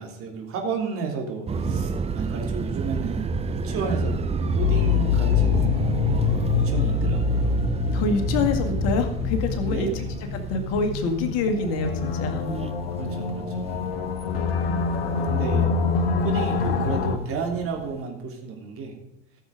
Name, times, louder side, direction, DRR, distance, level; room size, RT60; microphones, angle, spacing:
voice 1, 0.0-7.6 9.6-10.1 13.0-13.8 15.2-15.9 16.2-18.9, right 5 dB, 45° right, 2 dB, 3.3 m, -33 dB
sound 1, 1.5-18.0, right 5 dB, 20° right, 0.8 m, -31 dB
sound 2, 4.6-17.2, left 6 dB, 70° left, 1.3 m, -25 dB
voice 2, 7.9-10.0 10.3-12.4, left 4 dB, 55° left, 6 dB, 2.0 m, -26 dB
14.0 x 7.2 x 5.1 m, 0.89 s
figure-of-eight pair, 70°, 30 cm